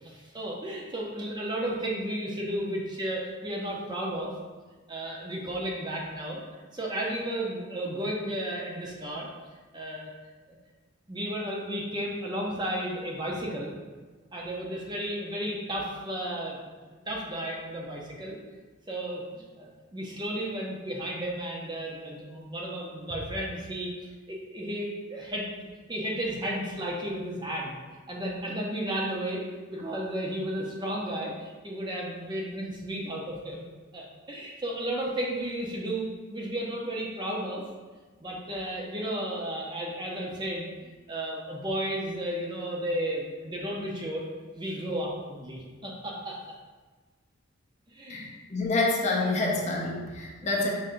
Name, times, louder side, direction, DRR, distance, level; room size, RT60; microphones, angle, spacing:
voice 1, 0.0-4.3 4.9-6.4 6.7-9.3 9.7-10.1 11.1-13.7 14.3-16.6 17.1-18.4 18.9-23.9 24.3-27.8 28.1-29.4 29.7-33.6 33.9-37.7 38.2-44.2 44.6-46.4 47.9-48.3 50.4-50.6, right 1 dB, 20° right, -2 dB, 0.5 m, -33 dB
voice 2, 48.1-50.7, left 2 dB, 35° left, -1 dB, 0.5 m, -27 dB
5.4 x 2.6 x 3.7 m, 1.3 s
head